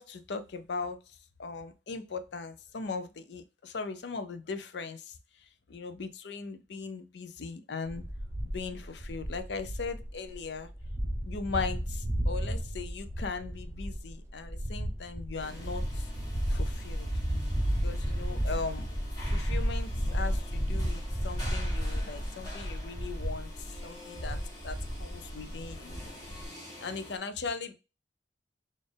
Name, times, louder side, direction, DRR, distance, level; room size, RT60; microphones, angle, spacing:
voice 1, 0.0-8.1 8.4-10.7 11.2-16.1 16.5-17.1 17.8-18.9 19.3-26.0 26.8-27.7, left 4 dB, 70° left, 10 dB, 0.5 m, -39 dB
sound 1, 7.9-26.5, equal, 15° right, 0.7 m, -33 dB
sound 2, 15.4-27.2, left 1 dB, 25° left, 1.7 m, -48 dB
4.1 x 2.5 x 3.3 m, 0.30 s
head